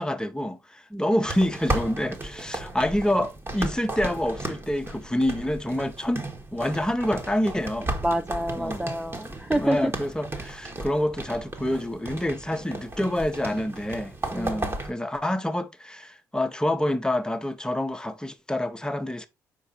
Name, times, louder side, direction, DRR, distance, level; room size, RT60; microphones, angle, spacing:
voice 1, 0.0-6.2 6.5-7.9 8.5-8.9 9.6-19.3, left 1 dB, 10° left, 1.0 m, -27 dB
sound 1, 1.2-14.9, right 2 dB, 25° right, 1.5 m, -35 dB
voice 2, 8.0-9.8 14.3-14.6, right 1 dB, 10° right, 0.6 m, -28 dB
5.4 x 4.5 x 4.1 m
hypercardioid pair, 50°, 9 cm